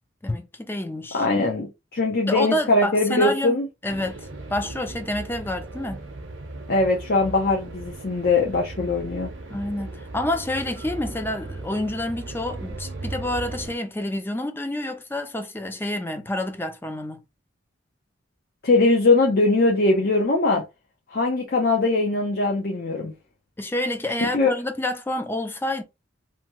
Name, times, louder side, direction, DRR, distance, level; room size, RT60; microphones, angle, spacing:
voice 1, 0.2-1.3 2.3-6.0 9.5-17.2 23.6-25.8, left 1 dB, 10° left, 0.4 m, -28 dB
voice 2, 1.1-3.7 6.7-9.3 18.6-20.6 21.1-23.1 24.3-24.5, left 2 dB, 50° left, 0.7 m, -21 dB
sound 1, 3.9-13.8, right 2 dB, 70° right, 0.7 m, -37 dB
2.9 x 2.2 x 2.9 m
head